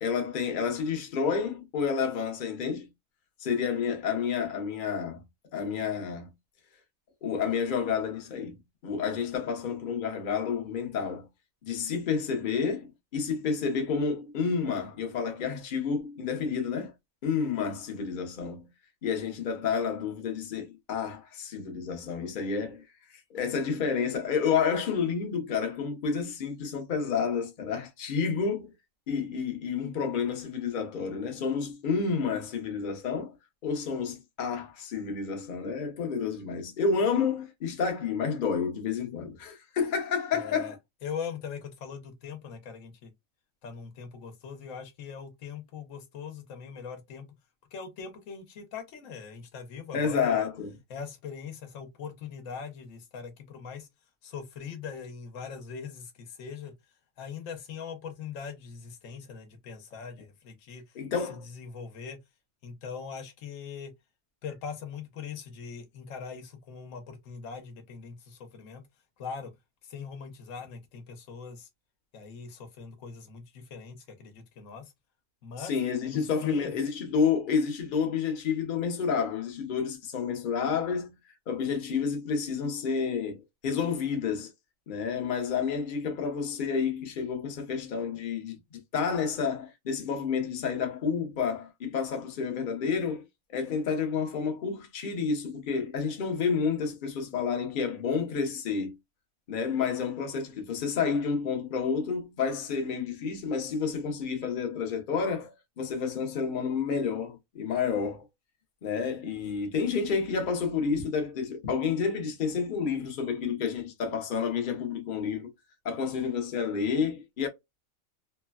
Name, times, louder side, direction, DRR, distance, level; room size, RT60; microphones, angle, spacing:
voice 1, 0.0-2.9 3.4-5.2 5.5-6.3 7.2-8.6 8.8-11.3 11.6-16.9 17.2-18.7 19.0-22.8 23.3-28.7 29.1-33.3 33.6-40.8 49.9-50.7 60.9-61.4 75.6-81.1 81.5-84.5 84.9-93.2 93.5-98.9 99.5-108.3 108.8-115.5 115.8-117.5, left 6 dB, 45° left, 0.7 m, -30 dB
voice 2, 40.3-40.7 41.0-43.1 43.6-47.3 47.7-50.5 50.9-53.9 54.2-56.7 57.2-62.2 62.6-63.9 64.4-68.8 69.2-69.5 69.8-71.7 72.1-74.9 75.4-75.7 76.1-76.7, left 6 dB, 65° left, 1.1 m, -41 dB
3.1 x 2.2 x 2.2 m
omnidirectional pair, 1.5 m